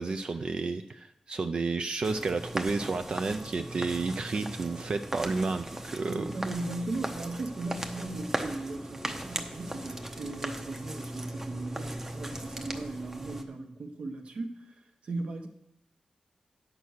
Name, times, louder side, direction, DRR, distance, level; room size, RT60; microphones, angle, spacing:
voice 1, 0.0-6.3, right 3 dB, 45° right, 7 dB, 0.4 m, -31 dB
sound 1, 2.0-13.4, right 1 dB, 20° right, 0.8 m, -38 dB
voice 2, 6.1-15.5, right 2 dB, 60° right, 5 dB, 1.0 m, -37 dB
9.3 x 6.0 x 6.5 m, 0.78 s
wide cardioid pair, 150°, 2 cm